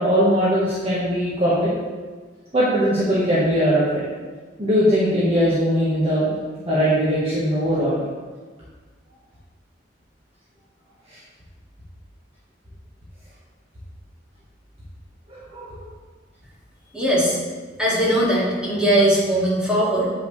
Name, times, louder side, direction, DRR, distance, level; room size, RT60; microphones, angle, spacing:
voice 1, 0.0-1.7 2.5-4.0 4.6-6.3 6.6-8.0 11.1-11.2 15.3-15.9, equal, 35° right, -9 dB, 1.4 m, -20 dB
voice 2, 16.9-17.4 17.8-20.1, right 1 dB, 5° right, -8 dB, 2.2 m, -19 dB
8.7 x 5.4 x 3.2 m, 1.4 s
head